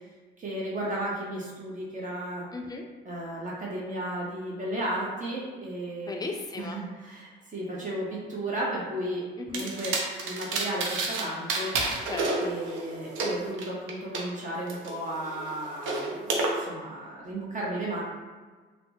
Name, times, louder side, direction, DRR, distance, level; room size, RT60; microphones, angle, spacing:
voice 1, 0.4-2.5 3.0-6.1 6.6-9.3 9.5-10.0 10.2-12.1 12.4-18.0, right 1 dB, 40° right, -5 dB, 0.7 m, -34 dB
voice 2, 2.5-2.9 6.1-6.8 9.4-9.7 12.1-12.5, left 3 dB, 20° left, 2 dB, 0.4 m, -36 dB
sound 1, 9.5-11.2 11.5-14.2 14.7-16.5, right 3 dB, 85° right, 0.5 m, -30 dB
3.2 x 2.0 x 2.9 m, 1.4 s
cardioid pair, 90°, 20 cm